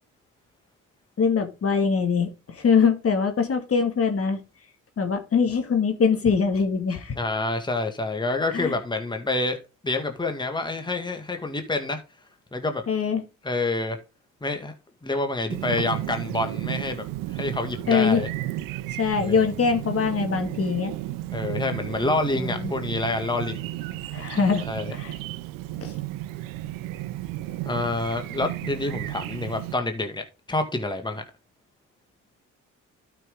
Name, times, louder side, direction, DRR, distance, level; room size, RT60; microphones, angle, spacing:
voice 1, 1.2-4.4 5.0-7.1 8.3-8.8 12.9-13.2 17.9-18.2 19.0-20.9 22.3-22.7 24.1-24.6 24.9-25.1 25.8-25.9, left 5 dB, 45° left, 2.2 m, -23 dB
voice 2, 7.2-9.6 9.8-12.0 12.5-12.8 13.4-14.0 14.4-14.7 15.0-18.3 19.2-19.4 21.3-23.7 24.7-24.9 27.6-31.2, left 2 dB, 15° left, 1.9 m, -27 dB
Chirp tweet, 15.5-29.7, right 15 dB, 80° right, 0.9 m, -33 dB
12.0 x 6.0 x 3.8 m
supercardioid pair, 65°, 32 cm